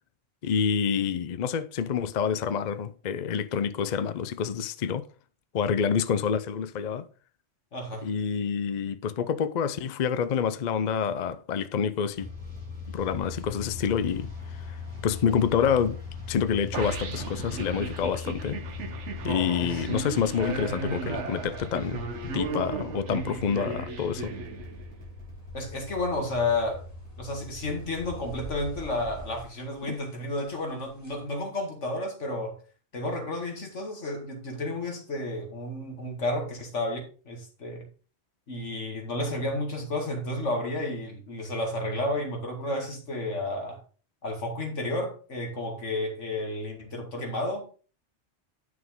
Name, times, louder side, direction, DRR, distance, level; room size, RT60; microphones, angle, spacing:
voice 1, 0.4-5.0 5.5-7.1 8.0-12.3 12.9-14.3 14.7-14.8 15.0-16.0 16.3-18.6 19.2-24.3 29.8-30.0, left 7 dB, 50° left, 0.6 m, -27 dB
voice 2, 7.7-8.1 19.6-19.8 25.5-26.8 27.2-32.6 32.9-37.0 37.3-37.9 38.5-43.8 44.2-47.7, left 2 dB, 90° left, 2.4 m, -31 dB
sound 1, 12.1-29.4, left 4 dB, 5° left, 4.6 m, -41 dB
sound 2, 16.7-25.0, right 5 dB, 75° right, 1.3 m, -35 dB
sound 3, 25.3-31.2, right 1 dB, 15° right, 3.3 m, -49 dB
9.3 x 6.2 x 3.7 m
omnidirectional pair, 1.2 m